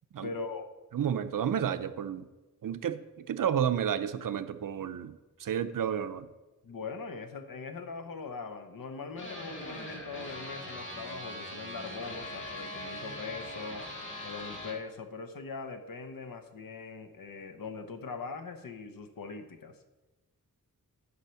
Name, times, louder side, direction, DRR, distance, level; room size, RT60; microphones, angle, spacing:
voice 1, 0.2-0.7 6.6-13.8 14.2-19.7, left 4 dB, 85° left, 7 dB, 1.0 m, -41 dB
voice 2, 0.9-2.3 2.6-3.0 3.3-5.1 5.4-6.3, right 8 dB, 75° right, 11 dB, 0.6 m, -31 dB
sound 1, 9.2-14.7, left 1 dB, 35° left, 1.8 m, -41 dB
9.6 x 5.7 x 5.8 m, 1.1 s
wide cardioid pair, 145°, 33 cm